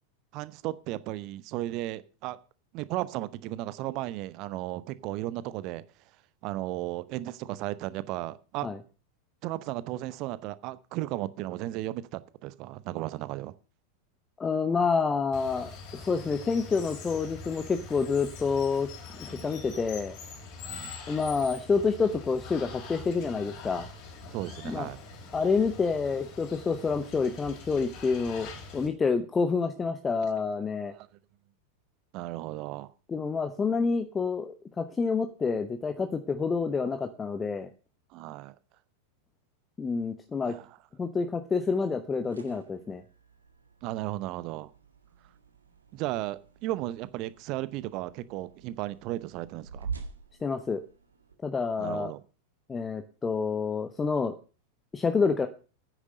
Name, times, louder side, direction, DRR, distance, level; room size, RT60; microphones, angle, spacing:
voice 1, 0.3-2.4 2.7-5.8 6.4-8.7 9.4-13.5 19.3-19.6 20.6-21.0 24.3-25.0 30.9-31.1 32.1-32.9 38.1-38.6 40.5-40.8 43.8-44.7 45.9-49.9 51.8-52.2, right 16 dB, 40° right, 0.8 m, -35 dB
voice 2, 14.4-18.9 19.2-20.1 21.1-23.9 24.6-24.9 25.3-28.5 28.7-30.9 33.1-37.7 39.8-40.6 41.0-43.0 50.4-50.8 51.4-52.1 52.7-54.3 54.9-55.5, left 5 dB, 15° left, 0.9 m, -28 dB
Water, 15.3-28.9, left 4 dB, 40° left, 3.6 m, -44 dB
sound 1, 42.1-51.3, right 5 dB, 75° right, 1.7 m, -46 dB
9.8 x 9.4 x 6.6 m
figure-of-eight pair, 90°, 0 cm